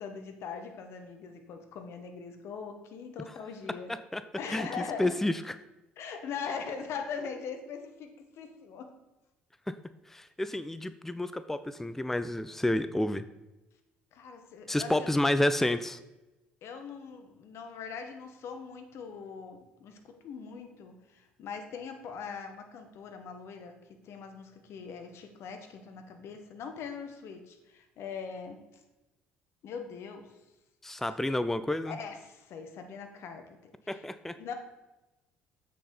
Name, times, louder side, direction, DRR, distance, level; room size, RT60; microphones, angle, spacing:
voice 1, 0.0-3.9 4.4-5.2 6.0-8.9 14.1-15.1 16.6-28.6 29.6-30.3 31.9-34.0 34.3-34.5, left 6 dB, 55° left, 6 dB, 1.2 m, -41 dB
voice 2, 3.9-4.2 4.5-5.5 10.1-13.3 14.7-16.0 30.8-32.0 33.9-34.4, left 1 dB, 5° left, 12 dB, 0.4 m, -30 dB
7.4 x 6.6 x 4.1 m, 1.0 s
hypercardioid pair, 55°, 5 cm